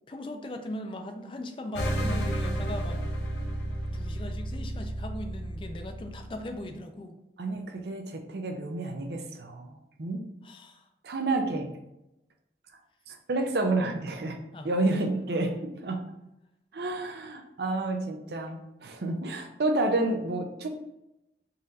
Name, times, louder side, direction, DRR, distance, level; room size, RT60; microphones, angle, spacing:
voice 1, 0.1-3.0 3.9-7.1 10.4-10.9 14.5-15.2, left 1 dB, 30° left, 6 dB, 0.4 m, -39 dB
sound 1, 1.8-6.6, right 1 dB, 75° left, 0.8 m, -32 dB
voice 2, 7.4-10.2 11.0-11.7 13.1-14.4 14.6-15.5 15.8-16.0 16.7-20.7, right 2 dB, 65° right, 4 dB, 0.5 m, -30 dB
4.1 x 2.5 x 4.0 m, 0.89 s
head